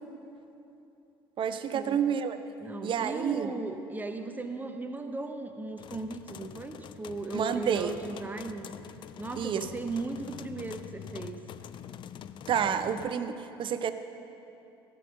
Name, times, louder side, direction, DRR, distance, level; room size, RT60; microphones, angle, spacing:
voice 1, 1.4-2.4 2.8-3.5 7.3-7.9 9.4-9.7 12.5-13.9, right 8 dB, 40° right, 11 dB, 0.6 m, -29 dB
voice 2, 2.6-8.7 9.2-11.4, right 2 dB, 15° right, 7 dB, 0.8 m, -37 dB
sound 1, 5.8-13.1, left 9 dB, 40° left, 0.4 m, -45 dB
15.0 x 5.4 x 6.9 m, 2.9 s
figure-of-eight pair, 55°, 13 cm